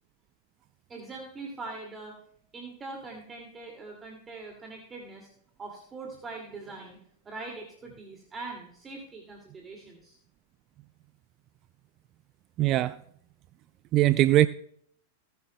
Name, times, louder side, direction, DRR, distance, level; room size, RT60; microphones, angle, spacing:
voice 1, 0.9-2.1 2.5-5.3 5.6-10.2, right 3 dB, 20° right, 0 dB, 2.3 m, -42 dB
voice 2, 12.6-13.0 13.9-14.5, right 15 dB, 40° right, 15 dB, 0.3 m, -21 dB
18.5 x 10.0 x 2.2 m, 0.67 s
hypercardioid pair, 100°, 0 cm